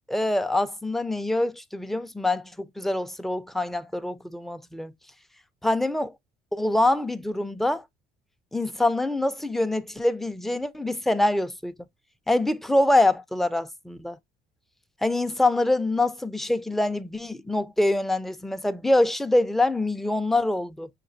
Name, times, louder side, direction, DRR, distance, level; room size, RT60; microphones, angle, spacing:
voice 1, 0.1-4.9 5.6-6.1 6.5-7.8 8.5-11.7 12.3-14.2 15.0-20.9, left 2 dB, ahead, 0.5 m, -25 dB
6.6 x 2.6 x 2.7 m
cardioid pair, 110°, 17 cm